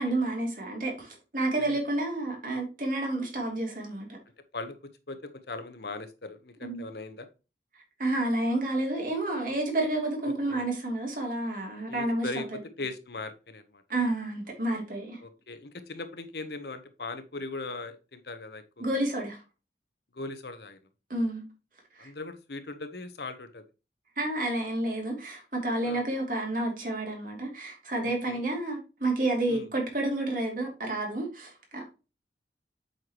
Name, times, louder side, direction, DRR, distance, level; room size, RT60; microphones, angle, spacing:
voice 1, 0.0-4.1 6.6-6.8 8.0-12.4 13.9-15.2 18.8-19.4 21.1-21.4 22.0-22.1 24.2-31.9, right 2 dB, 50° right, 2.8 m, -30 dB
voice 2, 5.5-7.3 10.2-10.7 11.9-13.8 15.2-18.8 20.1-20.8 22.0-23.6 25.8-26.0 28.0-28.4 29.5-29.7, left 3 dB, 70° left, 1.0 m, -39 dB
7.9 x 5.8 x 3.0 m
head